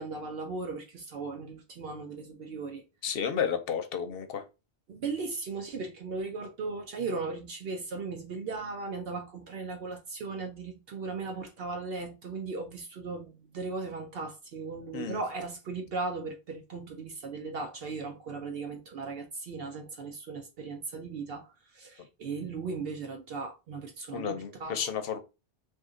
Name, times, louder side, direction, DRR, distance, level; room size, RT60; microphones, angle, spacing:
voice 1, 0.0-2.8 4.9-24.9, right 4 dB, 65° right, 0.8 m, -37 dB
voice 2, 3.0-4.4 14.9-15.2 24.1-25.2, left 7 dB, 65° left, 0.7 m, -32 dB
2.6 x 2.5 x 3.6 m
omnidirectional pair, 1.1 m